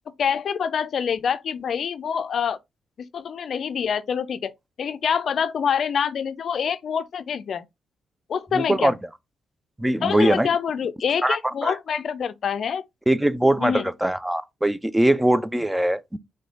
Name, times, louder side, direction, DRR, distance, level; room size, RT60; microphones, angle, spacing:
voice 1, 0.2-2.6 3.1-4.5 4.8-7.7 8.3-8.9 10.0-12.8 13.6-13.9, left 7 dB, 65° left, 0.4 m, -26 dB
voice 2, 8.5-8.9 9.8-10.5 11.2-11.4 11.6-11.7 13.1-16.2, right 1 dB, 10° right, 0.5 m, -21 dB
4.9 x 2.2 x 3.7 m
supercardioid pair, 55°, 0 cm